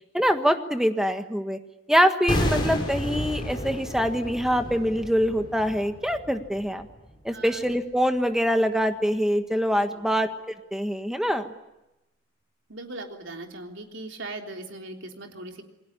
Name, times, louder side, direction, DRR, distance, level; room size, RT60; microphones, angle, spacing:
voice 1, 0.1-1.6 1.9-6.9 7.2-10.3 10.7-11.5, equal, 5° right, 7 dB, 1.4 m, -24 dB
sound 1, 2.3-7.3 7.5-7.7, left 1 dB, 25° left, 5.4 m, -31 dB
voice 2, 7.3-7.7 9.9-10.1 12.7-15.6, right 2 dB, 75° right, 3 dB, 3.5 m, -39 dB
28.5 x 20.5 x 9.9 m, 0.95 s
head